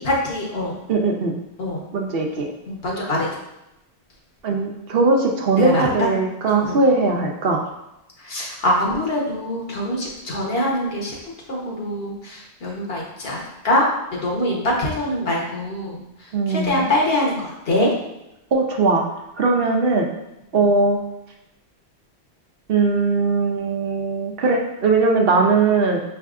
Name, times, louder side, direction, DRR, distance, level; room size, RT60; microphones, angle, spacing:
voice 1, 0.0-0.7 1.6-1.8 2.7-3.3 5.6-6.1 6.5-6.8 8.2-11.2 11.5-16.0 16.5-17.9 20.6-20.7, left 1 dB, 65° left, -2 dB, 1.2 m, -23 dB
voice 2, 0.9-1.3 1.9-2.5 4.4-7.6 16.3-16.9 18.5-19.0 19.4-20.1 20.5-21.0 22.7-26.0, right 3 dB, 65° right, 1 dB, 0.8 m, -19 dB
5.6 x 3.4 x 2.4 m, 0.89 s
omnidirectional pair, 1.1 m